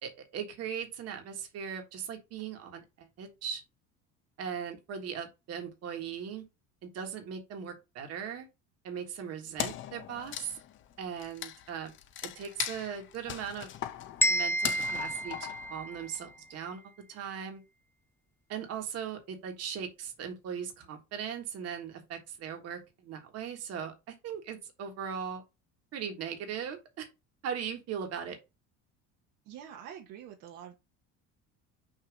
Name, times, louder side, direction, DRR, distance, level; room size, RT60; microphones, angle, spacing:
voice 1, 0.0-3.6 4.4-6.4 6.8-8.5 8.8-10.6 11.0-11.9 12.2-13.7 14.2-16.8 17.1-17.6 18.5-25.4 25.9-27.1 27.4-28.4, right 7 dB, 50° right, 1.6 m, -39 dB
Wood, 9.6-16.3, left 11 dB, 40° left, 0.6 m, -39 dB
sound 1, 14.2-16.2, left 1 dB, 10° left, 0.3 m, -30 dB
voice 2, 29.4-30.8, right 9 dB, 75° right, 1.2 m, -46 dB
6.5 x 2.9 x 5.2 m
cardioid pair, 155°, 32 cm